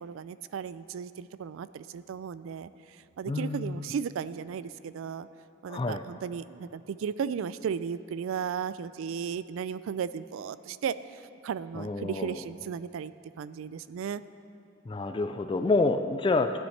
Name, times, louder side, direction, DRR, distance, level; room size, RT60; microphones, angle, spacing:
voice 1, 0.0-2.7 3.2-5.3 5.6-10.9 11.4-13.1 13.4-14.2, right 7 dB, 75° right, 16 dB, 0.3 m, -35 dB
voice 2, 3.3-3.8 5.7-6.0 11.8-12.4 14.9-16.6, left 3 dB, 25° left, 8 dB, 0.3 m, -28 dB
15.5 x 9.1 x 3.3 m, 2.8 s
head